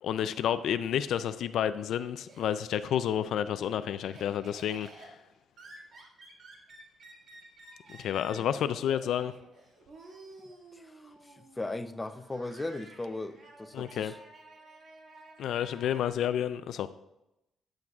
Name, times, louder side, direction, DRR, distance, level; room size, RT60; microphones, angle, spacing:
voice 1, 0.0-5.1 7.9-9.3 13.7-14.1 15.4-16.9, left 10 dB, 75° left, 0.3 m, -30 dB
Laughter, 0.9-2.9 3.2-16.1, right 2 dB, 55° right, 1.8 m, -53 dB
voice 2, 10.7-14.2, left 2 dB, 15° left, 0.5 m, -38 dB
10.5 x 7.6 x 2.3 m
cardioid pair, 90°, 0 cm